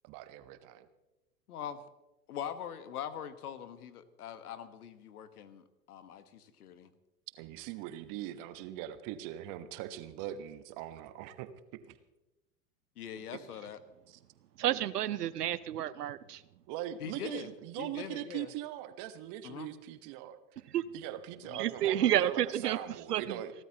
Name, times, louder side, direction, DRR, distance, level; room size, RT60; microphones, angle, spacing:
voice 1, 0.0-0.9 7.4-12.0 14.1-14.2 14.7-14.9 16.7-20.4 20.9-23.5, right 12 dB, 40° right, 11 dB, 1.3 m, -41 dB
voice 2, 1.5-1.8 2.3-6.9 13.0-13.8 17.0-17.5 17.8-18.5 19.4-19.7 21.4-21.6, left 9 dB, 70° left, 12 dB, 1.4 m, -42 dB
voice 3, 14.6-16.4 20.7-20.8 21.6-22.8 23.1-23.4, right 12 dB, 75° right, 17 dB, 0.8 m, -30 dB
29.0 x 12.5 x 2.9 m, 0.99 s
hypercardioid pair, 100°, 47 cm